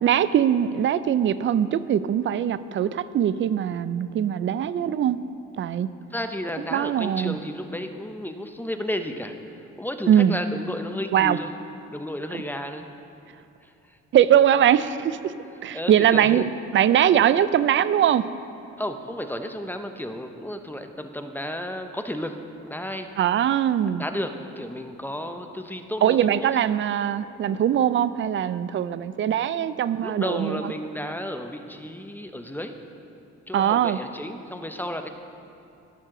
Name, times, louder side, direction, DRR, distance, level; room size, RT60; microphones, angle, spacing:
voice 1, 0.0-5.2 5.6-5.9 6.7-7.4 10.1-10.4 11.1-11.4 12.3-12.4 14.1-15.3 15.6-16.4 16.7-18.3 23.2-24.0 26.0-30.7 33.5-34.0, right 10 dB, 40° right, 15 dB, 0.4 m, -21 dB
voice 2, 6.1-11.5 11.9-12.9 13.6-14.0 14.7-14.8 15.7-16.5 18.8-23.1 24.0-26.2 26.5-26.6 30.0-32.7 33.5-35.1, left 1 dB, 5° left, 6 dB, 0.7 m, -33 dB
18.0 x 6.4 x 3.8 m, 2.7 s
cardioid pair, 90°, 30 cm